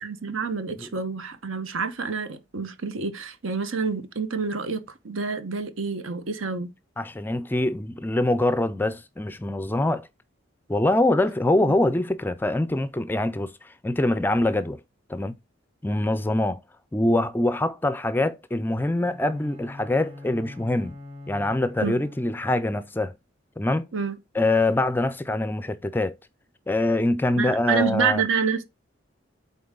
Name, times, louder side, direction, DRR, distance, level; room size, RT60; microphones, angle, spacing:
voice 1, 0.0-6.7 21.8-22.0 23.9-24.2 27.4-28.6, right 5 dB, 80° right, 1.0 m, -28 dB
voice 2, 7.0-10.1 10.7-14.8 15.1-15.3 15.8-16.6 16.9-20.9 21.3-23.1 23.6-23.9 24.3-26.2 26.7-28.2, left 1 dB, 10° left, 0.4 m, -24 dB
Bowed string instrument, 18.9-22.7, left 2 dB, 30° right, 1.8 m, -43 dB
7.7 x 4.2 x 3.7 m
head